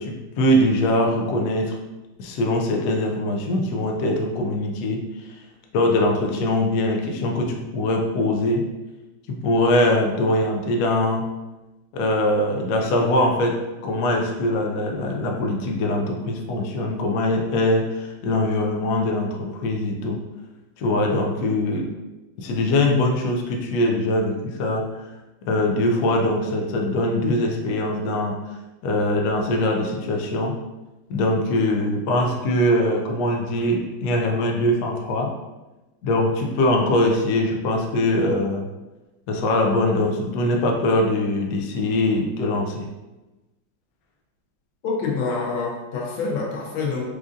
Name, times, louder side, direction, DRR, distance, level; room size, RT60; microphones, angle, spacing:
voice 1, 0.0-1.7 2.2-5.0 5.7-8.6 9.3-11.3 11.9-20.2 20.8-21.9 22.4-24.9 25.4-28.4 28.8-30.6 31.1-35.3 36.0-38.7 39.3-42.9, left 1 dB, 70° left, 1 dB, 1.0 m, -22 dB
voice 2, 44.8-47.0, left 4 dB, 90° left, -1 dB, 1.5 m, -26 dB
4.8 x 2.5 x 2.5 m, 1.1 s
omnidirectional pair, 2.1 m